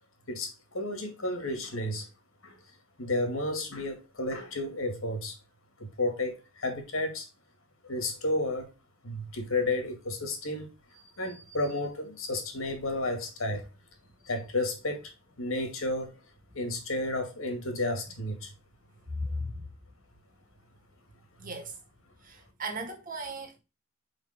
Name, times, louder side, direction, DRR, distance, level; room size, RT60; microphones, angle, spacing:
voice 1, 0.3-2.1 2.4-2.5 3.0-5.4 5.8-7.3 7.8-8.7 9.0-13.6 14.2-15.1 15.4-16.2 16.5-18.5 21.4-21.5, left 2 dB, 80° left, 2.2 m, -32 dB
voice 2, 19.1-19.6 21.4-21.8 22.2-23.6, equal, 40° right, 1.8 m, -36 dB
5.4 x 5.2 x 5.1 m
head